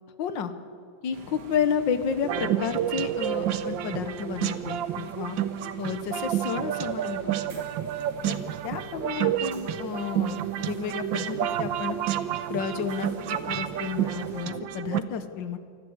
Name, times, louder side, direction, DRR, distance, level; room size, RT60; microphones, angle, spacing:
voice 1, 0.2-0.5 1.0-5.4 5.8-7.6 8.3-12.0 12.5-15.6, left 7 dB, 75° left, 10 dB, 1.8 m, -31 dB
sound 1, 1.1-14.5, right 6 dB, 60° right, 1.9 m, -46 dB
sound 2, 2.2-15.0, right 11 dB, 80° right, 1.5 m, -30 dB
25.0 x 14.0 x 7.9 m, 2.3 s
omnidirectional pair, 2.1 m